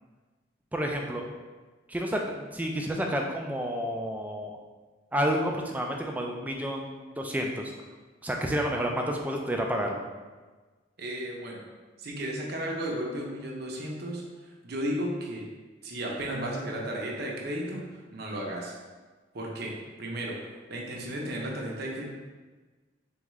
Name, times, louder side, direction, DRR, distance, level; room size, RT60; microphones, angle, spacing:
voice 1, 0.7-1.3 1.9-4.6 5.1-7.7 8.2-10.0, equal, 10° right, 1 dB, 0.3 m, -30 dB
voice 2, 11.0-11.6 12.0-14.2 14.6-15.4 15.8-18.7 19.3-20.4 20.7-22.0, right 1 dB, 55° right, -2 dB, 0.7 m, -34 dB
3.6 x 3.5 x 3.1 m, 1.3 s
head